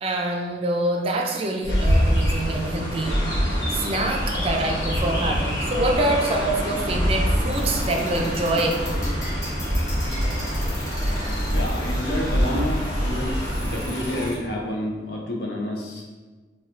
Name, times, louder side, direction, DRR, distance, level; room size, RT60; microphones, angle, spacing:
voice 1, 0.0-3.2 3.7-8.8, right 1 dB, 35° right, 1 dB, 0.4 m, -25 dB
Chirp tweet, 1.6-14.3, equal, 85° left, 0.9 m, -25 dB
sound 1, 7.5-14.3, equal, 20° left, 1.1 m, -39 dB
voice 2, 11.5-13.3 13.6-16.1, left 1 dB, 65° left, -1 dB, 0.6 m, -29 dB
4.1 x 2.3 x 2.5 m, 1.3 s
head